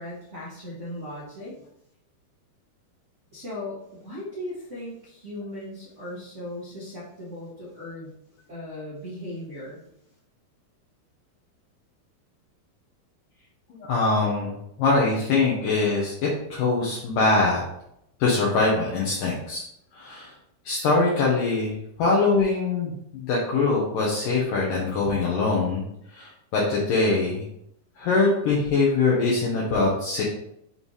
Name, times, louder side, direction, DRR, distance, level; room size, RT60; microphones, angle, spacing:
voice 1, 0.0-1.5 3.3-8.1 8.5-9.8, left 1 dB, 45° right, -10 dB, 0.9 m, -37 dB
voice 2, 13.7-17.6 18.2-19.6 19.9-20.3 20.7-25.8 26.1-27.5 28.0-30.2, left 3 dB, 70° left, -4 dB, 2.4 m, -23 dB
7.3 x 3.3 x 4.1 m, 0.76 s
omnidirectional pair, 4.5 m